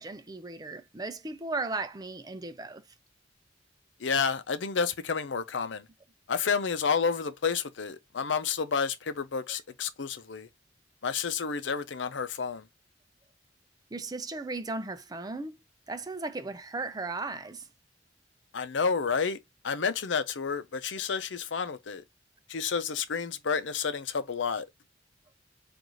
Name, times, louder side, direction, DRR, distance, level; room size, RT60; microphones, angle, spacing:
voice 1, 0.0-2.8 9.5-9.6 13.9-15.6 15.9-17.7, right 3 dB, 20° right, 0.5 m, -36 dB
voice 2, 4.0-5.8 6.3-10.5 11.0-12.6 18.5-19.4 19.6-22.0 22.5-24.7, left 5 dB, 85° left, 0.6 m, -30 dB
4.7 x 2.6 x 3.9 m
head